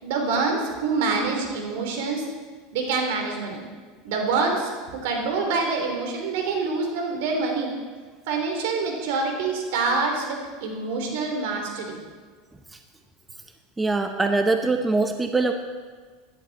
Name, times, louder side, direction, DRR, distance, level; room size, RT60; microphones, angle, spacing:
voice 1, 0.0-2.2 2.7-3.6 4.0-7.7 8.3-12.0, right 4 dB, 75° right, 2 dB, 3.4 m, -26 dB
voice 2, 13.8-15.5, right 3 dB, 10° right, 5 dB, 0.8 m, -23 dB
15.5 x 11.5 x 4.2 m, 1.5 s
supercardioid pair, 130°, 0 cm